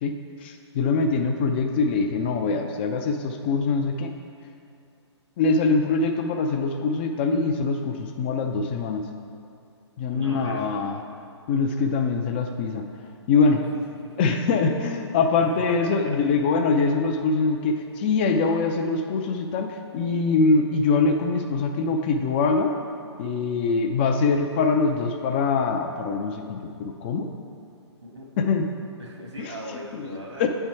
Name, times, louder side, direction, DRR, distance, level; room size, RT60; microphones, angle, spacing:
voice 1, 0.0-4.1 5.4-9.0 10.0-11.0 11.5-12.9 13.3-13.6 14.2-22.8 23.2-27.3 28.4-28.6 29.4-29.5 29.9-30.1 30.4-30.5, left 4 dB, 25° left, 4 dB, 0.4 m, -23 dB
voice 2, 10.0-10.8 14.0-14.3 15.7-16.0 28.0-28.6 29.0-30.5, equal, 75° right, -1 dB, 1.7 m, -39 dB
8.7 x 4.4 x 4.6 m, 2.6 s
figure-of-eight pair, 130°, 15 cm